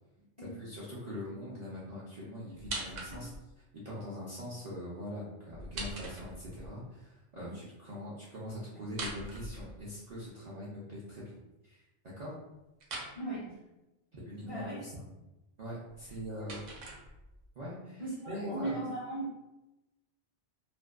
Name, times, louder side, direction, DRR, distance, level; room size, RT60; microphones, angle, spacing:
voice 1, 0.4-3.3 3.8-11.4 11.6-11.8 12.2-12.3 14.1-15.0 15.6-16.7 17.5-18.7, equal, 55° right, -8 dB, 0.5 m, -42 dB
sound 1, 2.6-3.5 5.5-6.7 8.8-10.2 12.8-13.2 15.9-17.5, right 2 dB, 90° right, 0.9 m, -42 dB
voice 2, 13.1-13.6 14.4-14.8 18.0-19.2, right 2 dB, 45° left, -8 dB, 0.4 m, -38 dB
2.4 x 2.1 x 2.3 m, 0.99 s
omnidirectional pair, 1.2 m